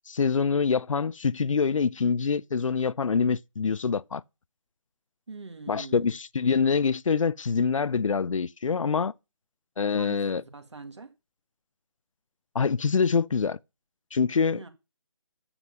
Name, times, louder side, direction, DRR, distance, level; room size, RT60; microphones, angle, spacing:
voice 1, 0.1-4.2 5.7-9.1 9.8-10.4 12.5-13.6 14.1-14.6, left 5 dB, 85° left, 0.5 m, -25 dB
voice 2, 5.3-6.1 10.0-11.1 14.5-14.7, right 4 dB, 60° right, 2.2 m, -43 dB
9.8 x 7.7 x 5.3 m
hypercardioid pair, 180°, 16 cm